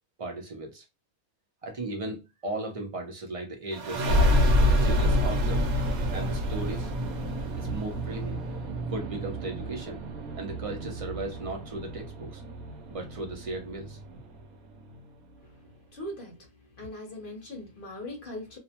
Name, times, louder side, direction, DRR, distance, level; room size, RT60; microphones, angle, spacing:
voice 1, 0.2-0.9 1.6-5.6 6.1-6.9 7.6-8.4 8.9-10.0 10.3-12.4 12.9-14.0, right 2 dB, 60° right, 0.3 m, -36 dB
sound 1, 3.7-15.0, equal, 90° right, 1.1 m, -28 dB
voice 2, 15.9-18.6, left 1 dB, 45° left, 0.8 m, -40 dB
2.6 x 2.1 x 2.8 m
omnidirectional pair, 1.5 m